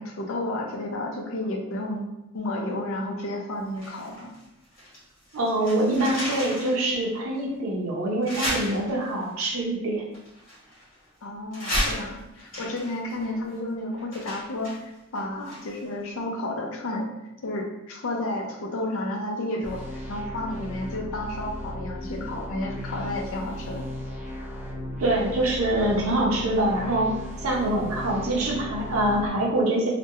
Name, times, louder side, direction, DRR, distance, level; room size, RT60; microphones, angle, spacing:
voice 1, 0.0-2.1 2.3-4.3 11.2-17.1 17.4-23.9, left 1 dB, 75° left, 1 dB, 0.5 m, -31 dB
sound 1, 3.8-5.0 5.3-6.8 7.3-7.4 8.2-9.2 10.1-11.1 11.5-15.9 16.2-16.3, equal, 45° left, 1.2 m, -33 dB
voice 2, 5.3-10.0 25.0-27.1 27.4-29.9, right 1 dB, 80° right, -3 dB, 0.5 m, -24 dB
sound 2, 19.6-29.3, equal, 10° right, 0.3 m, -36 dB
2.3 x 2.1 x 2.8 m, 0.92 s
head